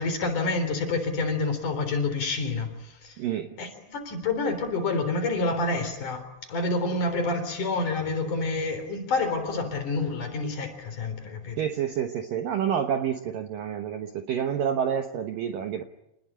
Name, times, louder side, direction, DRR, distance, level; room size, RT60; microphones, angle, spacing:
voice 1, 0.0-3.2 3.6-11.6, left 3 dB, 45° left, 7 dB, 4.9 m, -28 dB
voice 2, 3.2-3.6 11.6-15.8, right 8 dB, 65° right, 6 dB, 2.3 m, -28 dB
27.5 x 20.0 x 10.0 m, 0.87 s
omnidirectional pair, 5.3 m